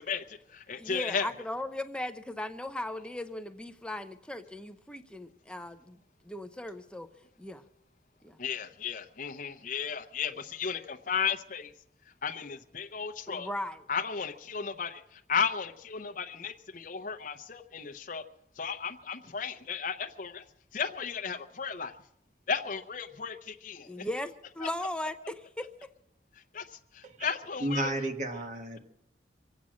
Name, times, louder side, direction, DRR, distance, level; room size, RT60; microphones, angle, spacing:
voice 1, 0.0-1.3 8.4-11.7 12.2-13.5 13.9-18.2 18.6-20.4 20.7-21.9 22.5-24.1 24.6-24.7 26.5-27.9, left 6 dB, 50° left, 5 dB, 0.7 m, -34 dB
voice 2, 0.8-6.0 6.3-7.1 7.4-7.6 8.2-8.4 13.3-13.8 23.9-25.7, left 1 dB, 5° left, 8 dB, 0.6 m, -37 dB
voice 3, 27.6-28.8, right 1 dB, 45° right, 4 dB, 1.6 m, -32 dB
24.5 x 8.5 x 6.3 m, 0.75 s
head